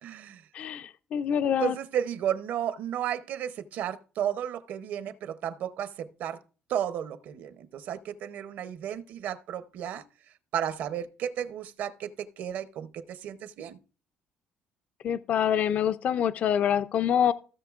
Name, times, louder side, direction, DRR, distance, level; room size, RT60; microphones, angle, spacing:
voice 1, 0.0-0.4 1.6-6.4 6.7-10.0 10.5-13.8, right 9 dB, 60° right, 0.7 m, -33 dB
voice 2, 0.5-1.8 15.0-17.3, left 9 dB, 40° left, 0.3 m, -26 dB
16.0 x 6.6 x 2.4 m
cardioid pair, 170°, 3 cm